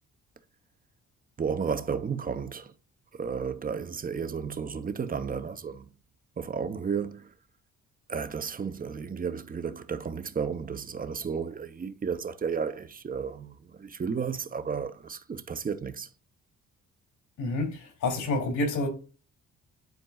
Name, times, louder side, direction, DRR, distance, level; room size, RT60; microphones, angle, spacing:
voice 1, 1.4-2.7 3.2-5.8 6.4-7.3 8.1-16.1, right 6 dB, 30° right, 0.8 m, -33 dB
voice 2, 17.4-18.9, left 2 dB, 85° left, 3.0 m, -28 dB
10.5 x 4.5 x 2.4 m
cardioid pair, 90°, 30 cm